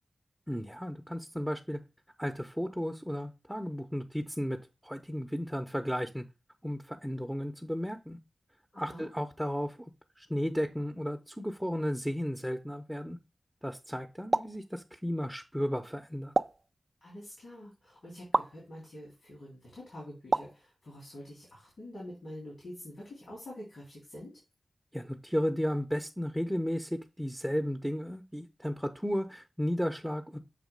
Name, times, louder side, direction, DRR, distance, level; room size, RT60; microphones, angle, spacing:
voice 1, 0.5-1.8 2.2-4.6 4.8-6.2 6.6-8.2 8.8-9.8 10.2-13.2 13.6-16.3 24.9-30.4, equal, 5° right, 4 dB, 0.8 m, -34 dB
voice 2, 8.7-9.1 17.0-24.3, left 1 dB, 85° left, -5 dB, 3.1 m, -46 dB
sound 1, 14.3-14.6 16.4-16.7 18.3-18.6 20.3-20.6, right 2 dB, 45° right, 0.3 m, -28 dB
7.3 x 2.5 x 5.2 m, 0.28 s
cardioid pair, 40°, 0 cm